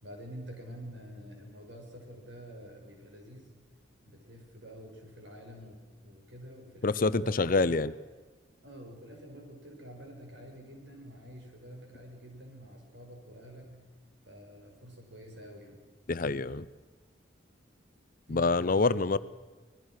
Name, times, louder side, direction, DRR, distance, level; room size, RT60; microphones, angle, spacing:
voice 1, 0.0-3.5 4.1-7.8 8.6-13.7 14.3-15.8 18.3-19.2, equal, 65° right, 1 dB, 6.1 m, -48 dB
voice 2, 6.8-7.9 16.1-16.6 18.3-19.2, left 3 dB, 45° left, 16 dB, 0.6 m, -26 dB
25.5 x 19.5 x 6.5 m, 1.3 s
head